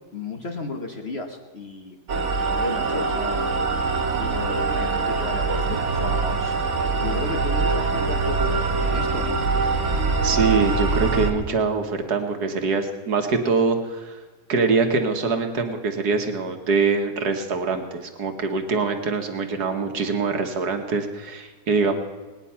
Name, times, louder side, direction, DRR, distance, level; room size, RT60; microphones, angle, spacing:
voice 1, 0.1-2.0 2.5-3.5 4.2-6.5 7.0-9.4, left 3 dB, 40° left, 3 dB, 1.2 m, -33 dB
sound 1, 2.1-11.3, right 4 dB, 50° right, 1.2 m, -23 dB
voice 2, 10.2-14.2 14.5-21.9, right 4 dB, 65° right, 5 dB, 1.7 m, -24 dB
19.0 x 9.8 x 5.6 m, 1.3 s
omnidirectional pair, 1.9 m